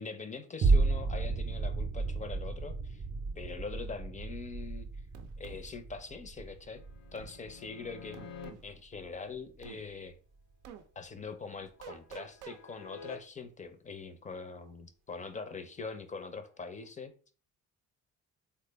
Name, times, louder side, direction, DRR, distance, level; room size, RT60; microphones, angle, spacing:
voice 1, 0.0-3.0 3.4-4.9 5.4-6.8 7.1-8.2 8.6-10.1 11.0-17.1, left 4 dB, 25° left, 0.4 m, -43 dB
sound 1, 0.6-9.2 9.6-9.7, right 3 dB, 35° right, 0.5 m, -33 dB
sound 2, 5.1-5.6 7.1-7.3 8.1-8.7 9.6-9.8 10.6-10.8 11.8-12.6, right 7 dB, 90° right, 0.5 m, -48 dB
sound 3, 6.7-8.5 11.2-13.2 16.6-16.8, left 6 dB, 70° left, 0.6 m, -50 dB
3.4 x 2.0 x 3.3 m
cardioid pair, 90°, 30 cm